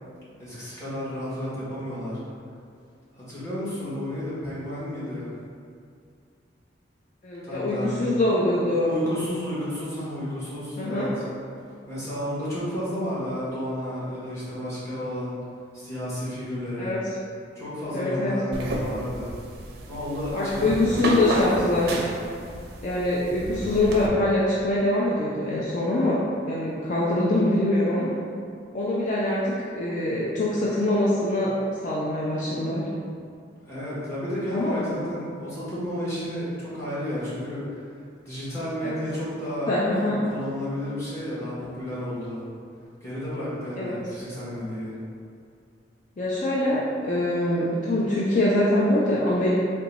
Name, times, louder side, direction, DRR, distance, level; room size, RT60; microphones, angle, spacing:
voice 1, 0.4-2.2 3.1-5.3 7.4-8.1 8.8-11.2 11.9-15.3 15.7-16.9 17.5-19.3 19.9-21.0 33.6-37.8 38.2-39.7 40.0-42.4 43.0-44.9, equal, 15° left, -11 dB, 1.3 m, -32 dB
voice 2, 7.2-8.9 10.8-11.1 16.8-17.0 17.9-18.3 20.3-22.0 22.8-26.2 26.5-28.1 28.7-31.5 31.8-32.9 34.5-34.7 38.8-38.9 39.7-40.2 43.8-44.0 46.2-49.5, left 1 dB, 45° left, -7 dB, 0.5 m, -24 dB
sound 1, 18.5-24.1, right 1 dB, 60° right, 0.5 m, -32 dB
3.8 x 2.3 x 4.0 m, 2.3 s
head